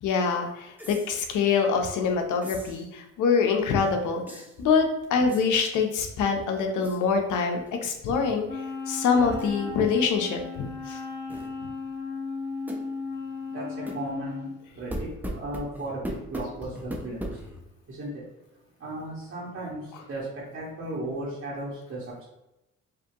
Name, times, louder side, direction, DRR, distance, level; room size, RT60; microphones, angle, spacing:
voice 1, 0.0-4.2 4.6-8.5 8.9-11.0, left 5 dB, 80° left, 4 dB, 0.8 m, -25 dB
sound 1, 0.8-1.1 2.4-2.8 4.3-4.6 5.3-5.7 6.8-7.0 7.6-7.9 8.2-8.3 9.4-9.6 11.3-11.5 12.7-12.9 13.9-14.0 14.9-17.6, equal, 5° right, 0.7 m, -37 dB
Wind instrument woodwind instrument, 8.5-14.6, left 4 dB, 35° left, 0.9 m, -36 dB
voice 2, 13.5-17.3 17.9-18.2 18.8-22.0, right 1 dB, 50° right, -7 dB, 1.4 m, -36 dB
4.9 x 2.6 x 2.9 m, 0.91 s
cardioid pair, 90°, 30 cm